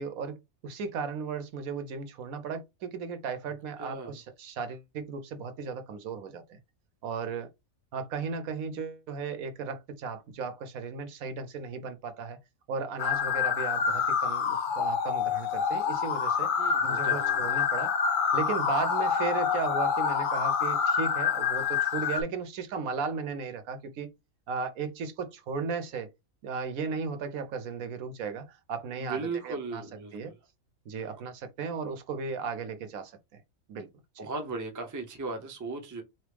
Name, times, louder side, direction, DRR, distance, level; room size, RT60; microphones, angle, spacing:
voice 1, 0.0-6.6 7.0-7.5 7.9-12.4 12.7-16.5 16.8-17.9 18.3-24.1 24.5-26.1 26.4-29.8 30.1-30.3 30.9-33.4 33.7-33.9 34.1-34.3, right 5 dB, 80° right, 1.2 m, -35 dB
voice 2, 3.8-4.2 16.6-17.5 29.0-30.3 31.0-31.1 34.2-36.0, right 3 dB, 20° right, 0.6 m, -37 dB
sound 1, 13.0-22.2, left 7 dB, 60° left, 0.5 m, -27 dB
4.0 x 3.1 x 3.3 m
omnidirectional pair, 1.5 m